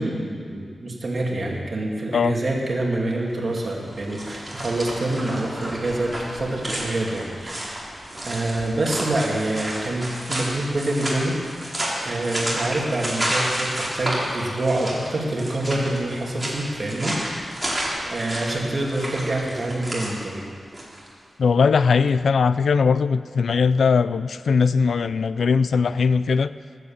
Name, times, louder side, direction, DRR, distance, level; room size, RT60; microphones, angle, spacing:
voice 1, 0.0-7.8 8.2-11.7 12.0-17.6 18.1-20.5, right 2 dB, 40° right, -1 dB, 2.3 m, -26 dB
sound 1, 3.4-21.1, right 1 dB, 10° right, 2.7 m, -31 dB
voice 2, 21.4-26.5, left 5 dB, 75° left, 14 dB, 0.4 m, -20 dB
18.5 x 8.2 x 7.2 m, 2.1 s
wide cardioid pair, 165°, 0 cm